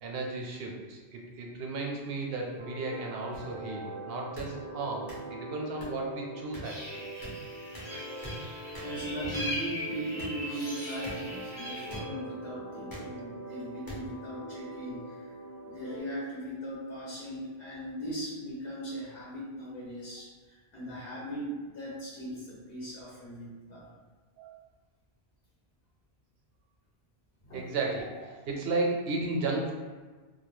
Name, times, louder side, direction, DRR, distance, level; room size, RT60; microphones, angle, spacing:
voice 1, 0.0-7.1 24.4-24.5 27.5-29.7, right 3 dB, 70° right, 0 dB, 0.8 m, -34 dB
sound 1, 2.6-16.0, right 1 dB, 35° right, 0.4 m, -43 dB
sound 2, 3.3-3.4 4.3-4.5 5.1-5.2 5.8-5.9 6.5-6.6 7.2-7.3 7.7-7.9 8.2-8.3 8.7-8.9 9.3-9.5 10.2-10.3 11.0-11.1 11.9-12.0 12.9-13.1 13.9-14.0 14.8-15.0, equal, 25° left, 0.6 m, -42 dB
sound 3, 6.6-12.0, left 1 dB, 40° left, 1.0 m, -40 dB
voice 2, 8.7-15.4 15.6-23.9 27.4-27.7, right 1 dB, 65° left, -7 dB, 0.9 m, -39 dB
2.3 x 2.1 x 3.0 m, 1.4 s
omnidirectional pair, 1.1 m